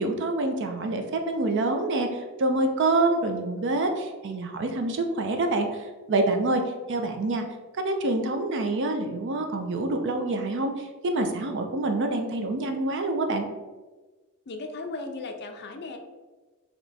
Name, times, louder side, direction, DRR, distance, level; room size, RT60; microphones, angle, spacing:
voice 1, 0.0-6.6 6.9-7.4 7.8-13.5, right 2 dB, 55° right, 5 dB, 0.5 m, -26 dB
voice 2, 14.5-16.0, left 3 dB, 50° left, 5 dB, 0.5 m, -36 dB
3.4 x 2.9 x 4.0 m, 1.3 s
head